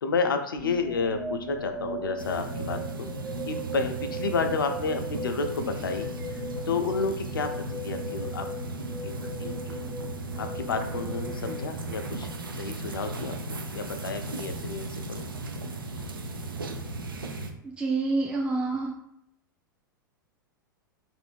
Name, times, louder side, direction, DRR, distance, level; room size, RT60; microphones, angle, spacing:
voice 1, 0.0-3.1 3.5-7.5 7.8-8.5 9.0-9.8 10.4-12.3 12.6-15.2, left 4 dB, 80° left, 6 dB, 0.5 m, -31 dB
sound 1, 0.6-12.6, equal, 35° right, 1.2 m, -38 dB
sound 2, 2.2-17.5, right 2 dB, 90° right, 0.4 m, -36 dB
voice 2, 17.6-18.9, right 3 dB, 10° right, -2 dB, 0.4 m, -27 dB
2.6 x 2.5 x 3.4 m, 0.75 s
hypercardioid pair, 95°, 11 cm